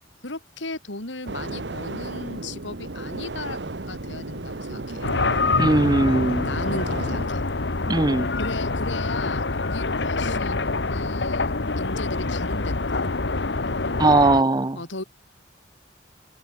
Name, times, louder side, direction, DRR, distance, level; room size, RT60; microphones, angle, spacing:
voice 1, 0.2-3.6 3.9-5.1 6.4-7.5 8.4-13.0 14.8-15.0, left 2 dB, 85° left, 3.7 m, -36 dB
sound 1, 1.3-7.3, right 2 dB, 70° right, 1.4 m, -34 dB
sound 2, 5.0-14.4, left 3 dB, 70° left, 1.4 m, -26 dB
voice 2, 5.6-6.5 7.9-8.3 14.0-14.8, right 2 dB, 20° right, 0.6 m, -19 dB
head